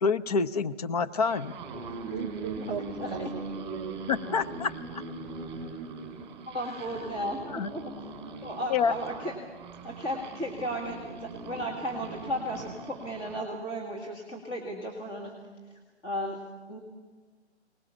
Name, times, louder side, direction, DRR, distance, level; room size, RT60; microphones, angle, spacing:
voice 1, 0.0-1.5 4.1-5.0 7.5-7.7 8.7-8.9, left 5 dB, 35° left, 10 dB, 0.7 m, -27 dB
sound 1, 1.1-13.4, right 2 dB, 15° right, 5.0 m, -40 dB
voice 2, 2.1-4.0, right 8 dB, 35° right, 5 dB, 0.5 m, -38 dB
voice 3, 2.6-3.3 4.3-4.4 6.5-7.4 7.7-7.9 8.4-9.3 9.8-15.4 15.7-16.8, equal, 15° left, -2 dB, 2.0 m, -35 dB
22.0 x 20.0 x 7.1 m, 1.4 s
hypercardioid pair, 145°, 34 cm